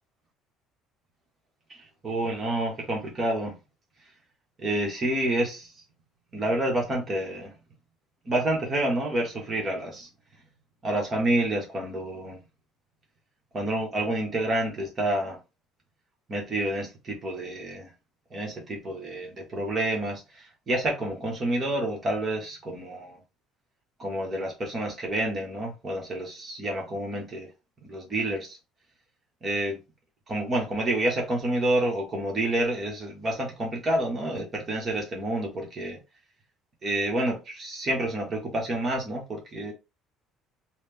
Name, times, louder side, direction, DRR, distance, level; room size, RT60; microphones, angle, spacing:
voice 1, 1.8-3.5 4.6-5.7 6.3-7.5 8.2-10.1 10.8-12.4 13.5-15.4 16.3-17.9 18.3-23.2 24.0-27.5 27.8-28.6 29.4-29.8 30.3-36.0 36.8-39.7, right 1 dB, 25° right, 1.3 m, -28 dB
4.0 x 2.3 x 3.5 m
cardioid pair, 170°, 0 cm